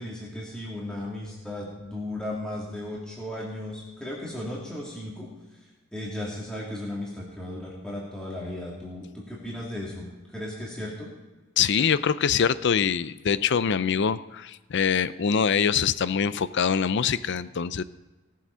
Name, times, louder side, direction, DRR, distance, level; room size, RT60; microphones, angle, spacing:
voice 1, 0.0-5.3 5.9-10.1 10.3-11.1, left 1 dB, 5° left, -5 dB, 2.3 m, -35 dB
voice 2, 11.6-17.8, left 7 dB, 55° left, 16 dB, 0.5 m, -24 dB
17.5 x 7.7 x 5.6 m, 1.2 s
head